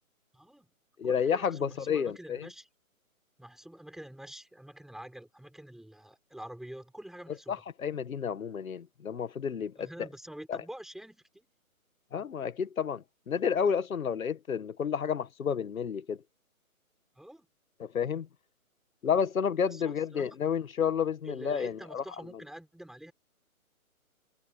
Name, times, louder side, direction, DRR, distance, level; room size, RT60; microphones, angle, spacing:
voice 1, 0.3-0.7 1.0-2.7 3.4-7.6 9.8-11.4 17.2-17.5 19.6-20.3 21.2-23.1, right 1 dB, ahead, 5.2 m, -46 dB
voice 2, 1.0-2.5 7.5-9.9 10.5-10.6 12.1-16.2 17.8-18.3 19.0-22.0, left 7 dB, 70° left, 1.6 m, -30 dB
hypercardioid pair, 160°, 43 cm